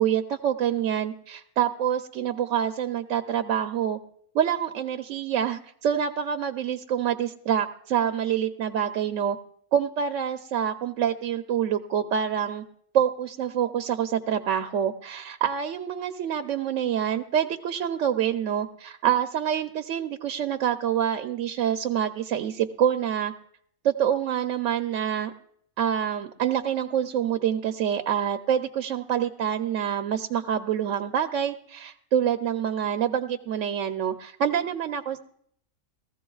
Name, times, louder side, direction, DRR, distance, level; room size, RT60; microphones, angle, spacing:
voice 1, 0.0-4.0 4.3-9.4 9.7-12.6 12.9-23.3 23.8-25.3 25.8-35.2, right 9 dB, 65° right, 7 dB, 0.9 m, -26 dB
20.0 x 15.0 x 2.3 m, 0.68 s
omnidirectional pair, 1.5 m